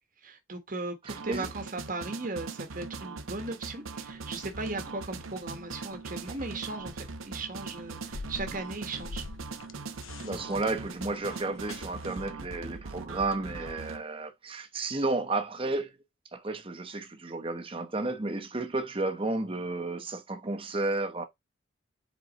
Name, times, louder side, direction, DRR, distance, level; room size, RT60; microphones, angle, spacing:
voice 1, 0.2-9.2, right 3 dB, 40° right, 1.2 m, -37 dB
voice 2, 1.0-1.5 10.2-15.9 16.3-21.3, right 2 dB, 25° right, 0.9 m, -32 dB
sound 1, 1.1-14.0, right 4 dB, 85° right, 0.8 m, -41 dB
sound 2, 3.9-12.3, left 3 dB, 85° left, 0.9 m, -48 dB
8.1 x 4.2 x 2.9 m
head